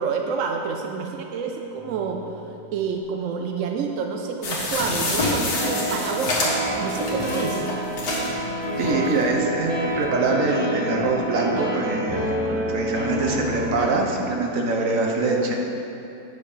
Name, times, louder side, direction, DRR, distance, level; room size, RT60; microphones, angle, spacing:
voice 1, 0.0-2.4 2.7-6.5 6.8-7.7 12.5-12.7 14.5-14.6, right 5 dB, 70° right, 3 dB, 0.7 m, -28 dB
sound 1, 1.8-2.9 5.6-13.9, equal, 20° right, 0.9 m, -28 dB
sound 2, 4.4-8.3 8.8-8.9 9.1-9.2, left 2 dB, 70° left, 2.1 m, -26 dB
voice 2, 8.8-15.6, right 3 dB, 55° right, 1 dB, 1.2 m, -24 dB
8.5 x 6.8 x 5.0 m, 2.8 s
omnidirectional pair, 1.9 m